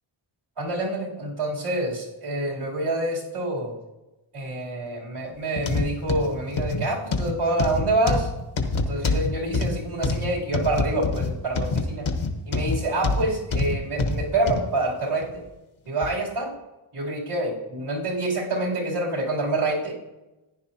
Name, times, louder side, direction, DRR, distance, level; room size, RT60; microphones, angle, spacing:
voice 1, 0.6-3.7 4.3-8.3 8.9-12.1 12.5-15.4 15.9-16.5 16.9-19.9, right 2 dB, 90° right, -4 dB, 3.2 m, -27 dB
sound 1, 5.6-14.7 15.2-15.4 16.0-16.1, left 3 dB, 70° left, 1.2 m, -26 dB
15.0 x 10.0 x 2.8 m, 1.0 s
wide cardioid pair, 95°, 49 cm